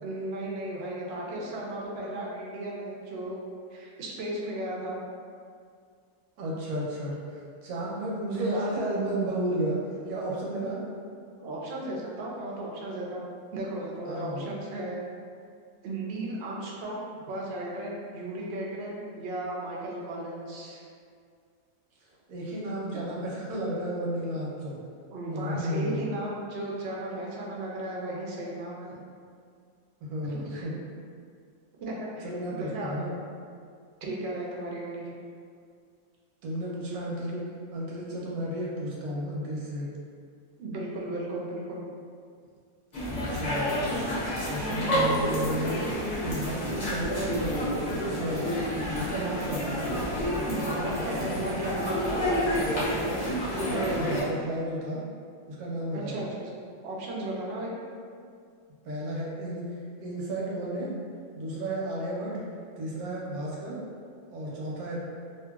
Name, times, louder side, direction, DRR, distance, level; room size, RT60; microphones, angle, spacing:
voice 1, 0.0-3.4 3.7-5.0 11.4-13.2 13.5-15.1 15.8-20.8 25.1-29.0 30.2-30.7 31.8-33.0 34.0-35.1 40.6-41.8 50.5-52.2 55.9-56.5 56.8-57.7, right 1 dB, 70° right, -4 dB, 0.6 m, -35 dB
voice 2, 6.4-7.1 7.6-9.8 10.1-10.8 14.1-14.4 22.3-24.8 25.3-26.0 30.0-30.8 32.2-33.2 36.4-37.4 37.7-39.9 43.3-44.1 44.5-45.8 46.2-48.6 49.0-49.8 53.5-55.0 55.5-56.2 58.9-59.6 60.0-60.9 61.4-62.4 62.8-63.8 64.3-65.0, right 1 dB, 85° right, -5 dB, 1.1 m, -32 dB
sound 1, 42.9-54.2, equal, 50° left, 0.5 m, -29 dB
2.7 x 2.5 x 2.3 m, 2.2 s
omnidirectional pair, 1.6 m